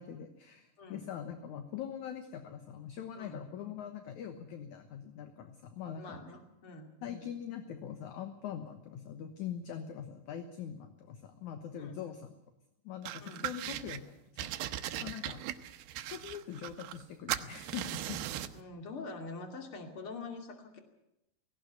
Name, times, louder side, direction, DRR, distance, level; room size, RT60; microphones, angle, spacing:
voice 1, 0.0-6.2 7.0-12.3 12.8-14.1 14.4-14.7 15.0-15.4 16.1-18.2, left 9 dB, 65° left, 8 dB, 2.4 m, -43 dB
voice 2, 6.0-6.9 11.8-12.0 13.2-13.5 14.9-15.2 18.5-20.8, left 3 dB, 40° left, 5 dB, 3.1 m, -45 dB
sound 1, 13.1-14.0 14.4-17.0 17.3-18.6, right 13 dB, 85° right, 2.7 m, -38 dB
17.5 x 17.5 x 9.5 m, 0.85 s
omnidirectional pair, 4.2 m